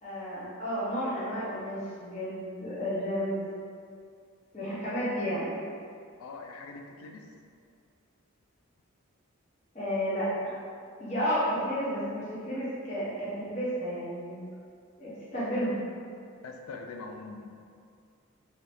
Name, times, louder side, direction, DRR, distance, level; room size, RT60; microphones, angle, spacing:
voice 1, 0.0-3.4 4.5-5.5 9.7-10.5 11.0-14.4 15.0-15.8, equal, 35° left, -10 dB, 0.8 m, -32 dB
voice 2, 6.2-7.3 16.4-17.5, left 3 dB, 80° left, 3 dB, 0.3 m, -43 dB
2.7 x 2.6 x 3.3 m, 2.3 s
head